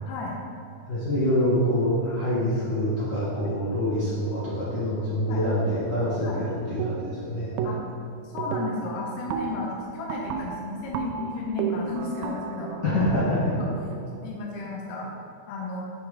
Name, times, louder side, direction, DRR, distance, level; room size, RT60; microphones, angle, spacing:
voice 1, 0.1-0.4 3.4-3.5 5.3-5.4 6.2-6.4 7.6-7.8 8.2-12.8 13.5-13.7 14.2-15.1 15.5-15.9, left 3 dB, 85° left, -2 dB, 3.0 m, -34 dB
voice 2, 0.9-7.5 12.8-13.5, equal, 60° left, -10 dB, 1.1 m, -25 dB
sound 1, 6.8-7.2 7.6-8.1 8.4-14.2, right 6 dB, 80° right, 2.1 m, -33 dB
7.3 x 5.7 x 4.9 m, 2.6 s
omnidirectional pair, 4.6 m